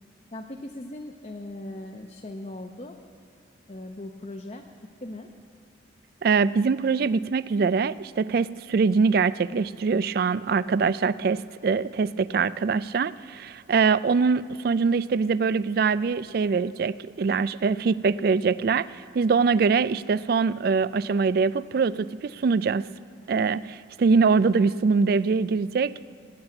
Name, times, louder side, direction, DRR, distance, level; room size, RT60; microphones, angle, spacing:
voice 1, 0.3-3.0 3.7-4.6 5.0-5.3 23.3-23.7, left 1 dB, 35° left, 2 dB, 0.7 m, -39 dB
voice 2, 6.2-22.9 23.3-25.9, right 5 dB, 50° right, 18 dB, 0.3 m, -23 dB
17.5 x 8.8 x 8.9 m, 2.4 s
head